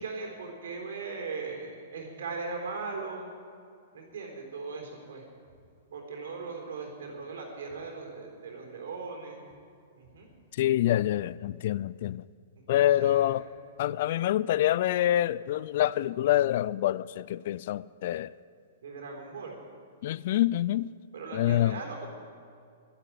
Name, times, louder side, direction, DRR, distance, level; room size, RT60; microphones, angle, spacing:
voice 1, 0.0-3.3 3.9-5.2 5.9-9.5 10.0-10.3 12.7-13.3 18.8-19.6 21.1-22.1, right 4 dB, 75° right, 3.8 m, -39 dB
voice 2, 10.6-12.2 12.7-13.4 13.8-18.3 20.0-20.9 21.3-21.8, left 13 dB, 60° left, 0.3 m, -26 dB
11.0 x 11.0 x 9.9 m
hypercardioid pair, 120°, 0 cm